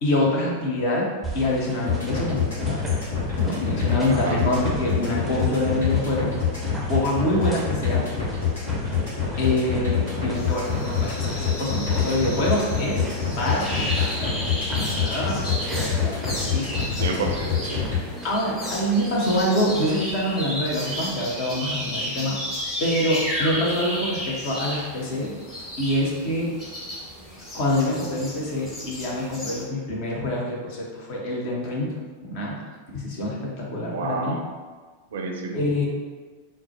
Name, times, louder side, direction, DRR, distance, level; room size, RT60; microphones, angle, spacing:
voice 1, 0.0-1.1 1.3-2.8 3.4-6.3 6.9-8.0 9.4-13.1 13.4-14.2 14.8-15.5 16.5-16.7 18.2-22.4 22.8-25.3 25.8-26.5 27.5-31.9 32.2-32.6 32.9-34.3 35.5-35.9, left 1 dB, 45° left, -3 dB, 0.8 m, -25 dB
sound 1, 1.2-21.1, right 1 dB, 10° right, 0.5 m, -38 dB
sound 2, 1.9-18.0, left 7 dB, 65° left, 1.2 m, -25 dB
voice 2, 4.1-4.5 16.9-17.8 33.9-34.4 35.1-35.6, right 3 dB, 60° right, 2 dB, 0.4 m, -29 dB
sound 3, 10.3-29.6, equal, 20° left, 1.3 m, -33 dB
3.9 x 2.1 x 2.8 m, 1.4 s
figure-of-eight pair, 90°, 0 cm